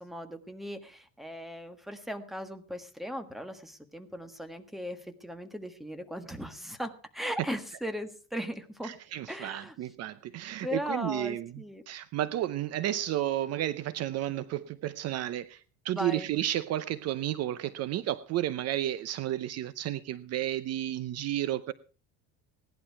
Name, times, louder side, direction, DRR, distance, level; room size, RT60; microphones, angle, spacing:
voice 1, 0.0-8.9 9.3-9.7 10.6-11.8 15.9-16.3, equal, ahead, 1.5 m, -38 dB
voice 2, 8.8-21.7, right 13 dB, 45° right, 0.7 m, -32 dB
17.5 x 11.5 x 4.6 m
cardioid pair, 150°, 34 cm